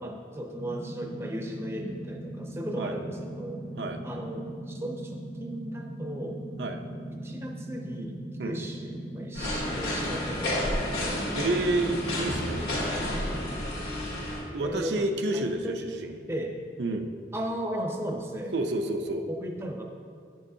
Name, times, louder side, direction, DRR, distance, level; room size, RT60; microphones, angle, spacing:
voice 1, 0.0-3.6 4.0-6.4 7.2-11.2 14.6-14.9 15.3-15.9 16.3-16.6 17.3-18.5 19.3-19.8, right 1 dB, 15° right, 1 dB, 0.5 m, -36 dB
sound 1, 0.5-13.6, right 1 dB, 40° left, 1.0 m, -39 dB
sound 2, 9.3-14.4, left 1 dB, 70° left, 1.6 m, -31 dB
voice 2, 11.3-12.7 14.5-16.2 16.8-17.1 18.5-19.2, right 2 dB, 85° right, 4 dB, 0.6 m, -29 dB
9.6 x 6.3 x 2.7 m, 2.3 s
head